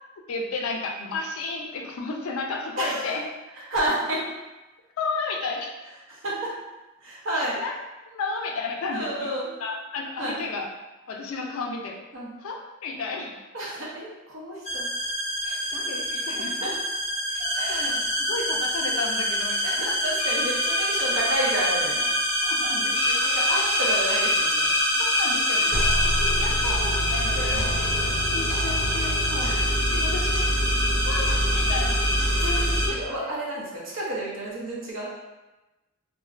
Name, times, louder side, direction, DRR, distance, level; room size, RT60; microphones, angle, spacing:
voice 1, 0.3-3.2 5.0-5.9 7.3-7.7 8.1-9.3 9.6-10.7 11.1-12.0 12.4-13.4 15.4-16.7 17.3-20.0 22.4-23.7 25.0-25.6 26.0-27.9 28.3-30.4 30.7-32.0 32.5-32.7, left 3 dB, 85° left, 1 dB, 0.4 m, -33 dB
voice 2, 2.8-3.2 3.6-4.2 6.1-6.5 7.0-7.6 8.9-9.5 10.2-10.4 12.1-12.3 13.5-14.9 16.3-16.7 17.5-18.0 19.6-22.1 23.2-25.0 25.5-25.8 27.4-28.1 29.3-29.6 32.4-35.1, right 1 dB, 60° right, -5 dB, 0.7 m, -31 dB
sound 1, 14.7-32.9, equal, 35° left, 0.6 m, -24 dB
2.5 x 2.1 x 2.4 m, 1.1 s
head